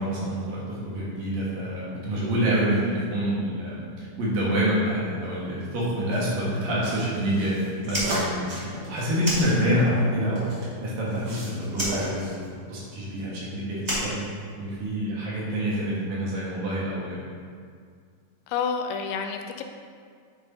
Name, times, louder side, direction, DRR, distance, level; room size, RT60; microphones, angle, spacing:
voice 1, 0.0-7.5 7.8-10.5 10.8-14.2 14.6-17.2, equal, 80° right, -7 dB, 3.2 m, -27 dB
sound 1, 5.2-6.2 6.8-10.7 11.1-11.7 11.9-12.5, right 1 dB, 45° right, 2.0 m, -37 dB
Fire, 7.8-10.1 10.3-11.3 11.7-14.9, equal, 25° right, 0.9 m, -32 dB
voice 2, 18.5-19.6, left 6 dB, 80° left, 5 dB, 2.1 m, -29 dB
9.5 x 3.8 x 4.1 m, 2.1 s
omnidirectional pair, 4.0 m